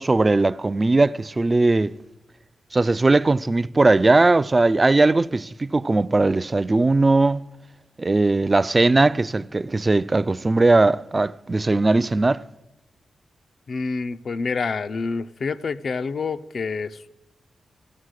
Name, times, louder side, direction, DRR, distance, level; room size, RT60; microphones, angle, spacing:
voice 1, 0.0-2.0 2.7-7.4 8.0-12.4, right 2 dB, 25° right, 0.3 m, -19 dB
voice 2, 13.7-17.1, left 4 dB, 55° left, 0.4 m, -28 dB
14.5 x 7.4 x 6.4 m
cardioid pair, 90°, 0 cm